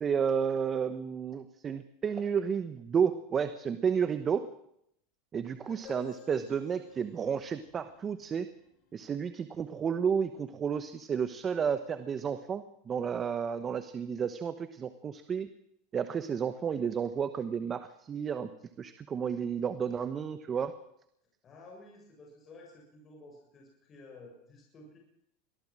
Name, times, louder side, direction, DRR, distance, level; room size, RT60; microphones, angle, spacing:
voice 1, 0.0-4.5 5.3-8.5 8.9-15.5 15.9-18.5 18.8-20.7, right 7 dB, 25° right, 11 dB, 1.1 m, -31 dB
voice 2, 5.5-5.8 21.4-25.0, left 2 dB, 30° left, 0 dB, 7.0 m, -53 dB
sound 1, 5.8-9.4, left 4 dB, 50° left, 7.3 m, -53 dB
23.0 x 16.0 x 7.6 m, 0.75 s
supercardioid pair, 130°, 0 cm